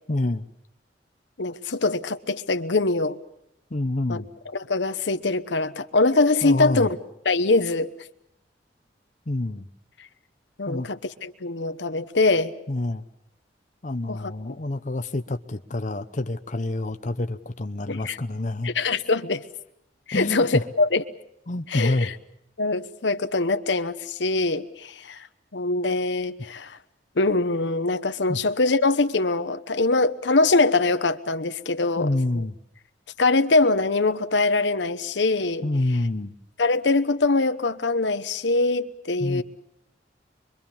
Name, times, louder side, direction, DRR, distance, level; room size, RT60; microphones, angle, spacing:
voice 1, 0.1-0.5 3.7-4.3 6.4-6.9 9.3-9.7 10.7-10.9 12.7-13.0 13.8-18.7 20.1-20.6 21.5-22.1 28.3-28.4 32.0-32.6 35.6-36.3 39.2-39.4, left 2 dB, 45° left, 8 dB, 0.9 m, -27 dB
voice 2, 1.4-3.2 4.1-4.2 4.5-6.9 7.2-7.9 10.6-12.5 14.1-14.3 17.9-18.2 18.6-19.4 20.1-21.0 21.7-22.1 22.6-25.3 25.5-26.8 27.2-32.4 33.2-35.7 36.6-39.4, left 3 dB, 80° left, 10 dB, 1.1 m, -23 dB
25.0 x 23.5 x 7.2 m, 0.82 s
head